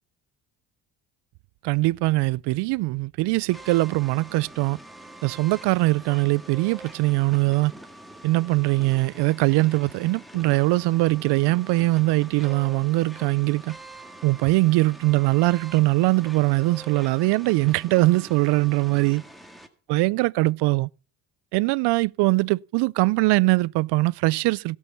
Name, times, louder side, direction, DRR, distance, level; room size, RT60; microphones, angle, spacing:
voice 1, 1.6-4.8 5.2-7.7 8.2-13.8 14.2-19.2 19.9-20.9 21.5-24.8, right 21 dB, 75° right, 0.5 m, -22 dB
sound 1, 3.5-19.7, right 1 dB, ahead, 1.7 m, -45 dB
17.0 x 6.4 x 6.8 m
cardioid pair, 120°, 41 cm